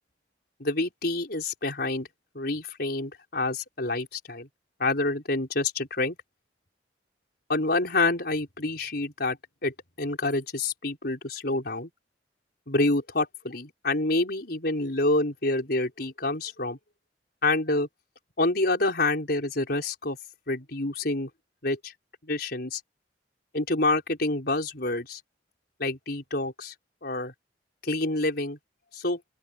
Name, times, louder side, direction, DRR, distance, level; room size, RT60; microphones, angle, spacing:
voice 1, 0.6-2.1 2.3-4.5 4.8-6.2 7.5-11.9 12.7-16.8 17.4-17.9 18.4-20.2 20.5-21.3 21.6-21.9 22.2-22.8 23.5-25.2 25.8-26.7 27.0-27.3 27.8-28.6 28.9-29.2, left 2 dB, 60° left, 5.1 m, -27 dB
open air
head